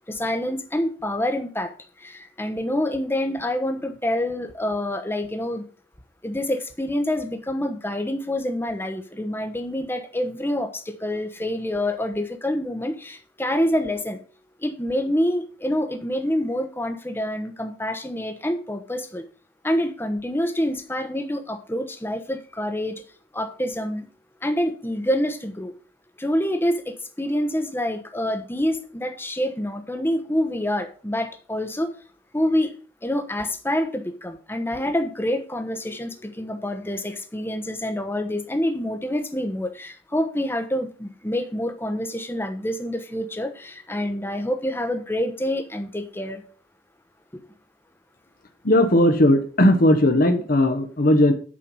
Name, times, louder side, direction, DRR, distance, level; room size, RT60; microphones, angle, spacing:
voice 1, 0.1-5.7 6.2-14.2 14.6-19.2 19.6-23.0 23.3-24.1 24.4-25.7 26.2-31.9 32.3-32.7 33.0-46.4 47.3-47.4, left 1 dB, 10° left, 7 dB, 1.0 m, -27 dB
voice 2, 48.6-51.3, left 1 dB, 50° left, 6 dB, 1.0 m, -17 dB
8.7 x 5.8 x 5.4 m, 0.39 s
head